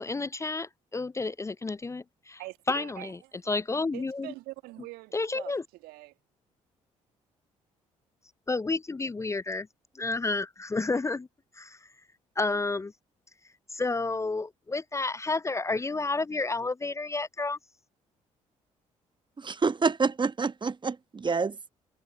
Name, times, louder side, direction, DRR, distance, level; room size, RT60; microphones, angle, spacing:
voice 1, 0.0-2.4 2.7-3.2 3.5-4.3 5.1-5.6 8.5-9.7 10.0-11.3 11.6-11.8 12.4-12.9 13.7-17.6, left 3 dB, 15° left, 0.5 m, -30 dB
voice 2, 2.4-3.4 3.9-6.1, right 20 dB, 65° right, 1.6 m, -44 dB
voice 3, 19.4-21.7, right 4 dB, 30° right, 1.1 m, -28 dB
figure-of-eight pair, 45°, 17 cm